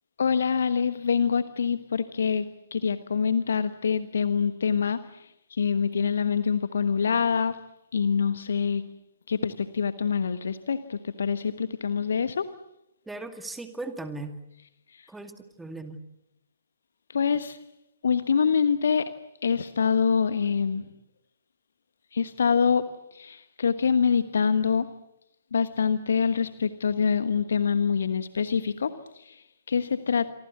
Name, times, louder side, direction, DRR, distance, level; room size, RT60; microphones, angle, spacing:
voice 1, 0.2-7.6 7.9-8.8 9.3-12.5 15.0-15.1 17.1-17.6 18.0-19.0 19.4-20.9 22.1-22.8 23.1-24.9 25.5-30.3, left 6 dB, 60° left, 12 dB, 1.3 m, -25 dB
voice 2, 13.1-14.3 15.1-16.0, right 2 dB, 5° right, 8 dB, 2.1 m, -38 dB
28.0 x 24.0 x 8.3 m, 0.86 s
figure-of-eight pair, 125°, 0 cm